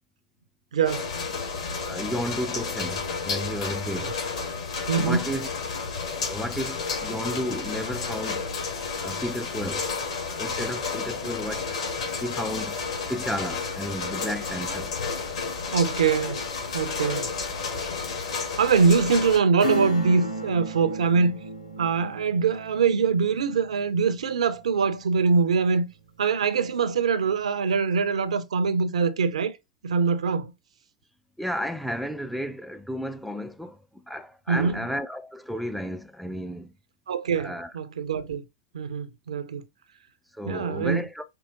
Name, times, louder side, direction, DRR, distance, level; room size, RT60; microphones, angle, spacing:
voice 1, 0.7-1.1 4.9-5.3 15.7-16.4 16.7-17.3 18.6-21.4 21.8-25.9 26.2-29.5 29.8-30.5 34.5-34.8 37.1-38.4 38.7-39.6 40.4-41.0, right 5 dB, 65° right, 0.5 m, -23 dB
sound 1, 0.9-19.4, left 4 dB, 60° left, 1.6 m, -31 dB
voice 2, 1.8-4.2 4.9-5.5 6.2-8.5 9.0-9.9 10.4-11.8 12.2-12.8 13.1-14.9 31.4-36.7 37.4-37.7 40.3-41.2, equal, ahead, 0.3 m, -33 dB
Acoustic guitar / Strum, 19.6-25.8 26.2-26.3, equal, 80° left, 1.0 m, -35 dB
4.6 x 3.0 x 2.6 m
figure-of-eight pair, 95°, 4 cm